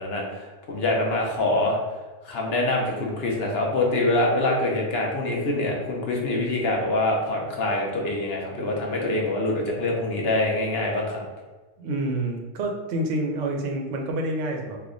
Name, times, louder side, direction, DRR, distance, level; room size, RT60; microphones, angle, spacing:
voice 1, 0.0-1.8 2.2-11.2, left 2 dB, 60° left, -1 dB, 0.9 m, -25 dB
voice 2, 11.8-14.9, right 1 dB, 85° right, 2 dB, 1.0 m, -28 dB
3.4 x 2.1 x 3.6 m, 1.3 s
omnidirectional pair, 1.3 m